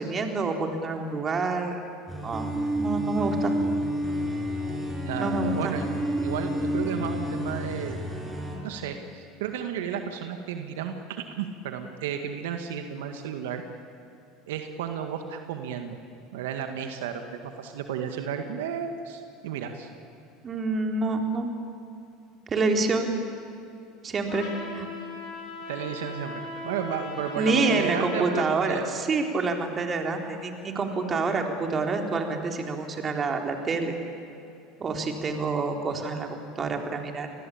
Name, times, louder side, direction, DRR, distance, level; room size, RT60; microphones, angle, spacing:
voice 1, 0.0-1.8 2.2-2.5 2.7-3.5 5.1-5.8 20.4-21.5 22.5-23.2 24.0-24.9 27.4-34.0 34.8-37.3, right 3 dB, 30° right, 3 dB, 4.0 m, -27 dB
sound 1, 2.1-8.6, equal, 15° right, 6.5 m, -29 dB
voice 2, 5.1-5.9 6.2-8.0 8.6-13.6 14.5-16.0 16.3-19.9 25.7-28.9, right 8 dB, 80° right, 6 dB, 1.9 m, -33 dB
Trumpet, 24.3-28.5, left 2 dB, 65° left, 7.4 m, -38 dB
28.5 x 20.5 x 8.7 m, 2.7 s
supercardioid pair, 95°, 0 cm